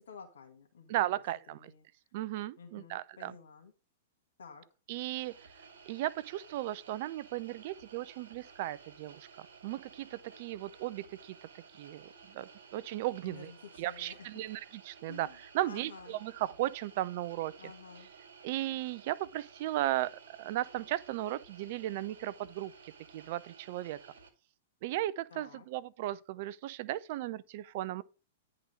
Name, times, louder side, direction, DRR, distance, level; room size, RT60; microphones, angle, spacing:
voice 1, 0.1-1.2 1.5-1.8 2.6-3.7 4.4-4.6 13.2-14.5 15.1-16.2 17.6-18.1 25.3-25.7, left 5 dB, 70° left, 1.5 m, -51 dB
voice 2, 0.9-1.7 2.1-3.3 4.9-5.4 5.9-11.4 11.8-13.5 13.8-15.3 15.5-17.5 18.4-24.0 24.8-28.0, right 15 dB, 50° right, 0.4 m, -36 dB
sound 1, 5.2-24.3, right 5 dB, 65° right, 1.7 m, -55 dB
10.0 x 3.8 x 5.0 m
figure-of-eight pair, 105°, 0 cm